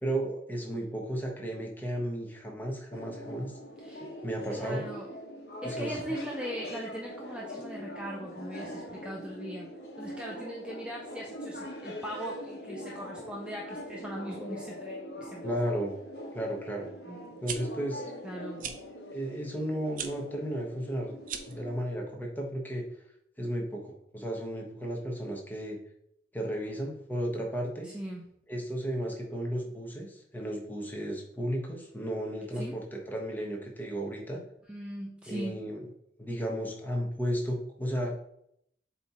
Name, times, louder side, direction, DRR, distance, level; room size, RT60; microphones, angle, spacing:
voice 1, 0.0-3.5 4.2-4.8 5.6-6.0 15.4-15.9 16.3-16.9 17.4-18.1 19.1-21.1 21.5-22.8 23.4-25.8 26.3-27.9 28.5-34.4 35.3-35.8 36.2-38.1, equal, 10° left, 0 dB, 1.1 m, -34 dB
sound 1, 2.9-21.8, equal, 65° left, 1.3 m, -42 dB
voice 2, 4.5-5.1 5.6-9.7 10.0-15.5 17.1-17.4 18.2-18.6 27.8-28.2 32.5-32.8 34.7-35.6, right 1 dB, 5° right, -1 dB, 0.5 m, -40 dB
sound 2, 17.3-17.6 18.6-18.8 19.9-20.1 21.2-21.6, right 8 dB, 50° right, 0.6 m, -37 dB
7.4 x 3.0 x 4.3 m, 0.73 s
head